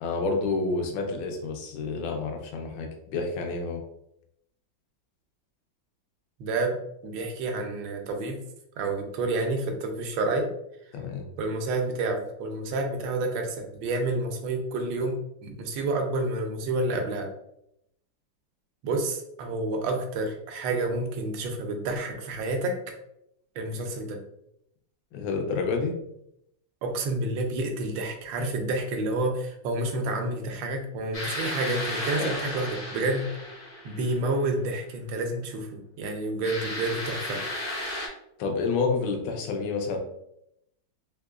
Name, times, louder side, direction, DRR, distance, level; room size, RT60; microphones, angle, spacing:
voice 1, 0.0-3.8 10.9-11.3 25.1-26.0 32.2-32.7 38.4-40.0, left 4 dB, 80° left, 3 dB, 1.4 m, -29 dB
voice 2, 6.4-8.4 8.8-10.5 11.4-17.3 18.8-22.8 23.6-24.2 26.8-33.3 33.8-37.4, right 2 dB, 80° right, 3 dB, 1.3 m, -29 dB
sound 1, 31.1-34.4 36.4-38.1, left 1 dB, 50° left, 0.4 m, -34 dB
3.8 x 2.9 x 2.3 m, 0.78 s
omnidirectional pair, 2.1 m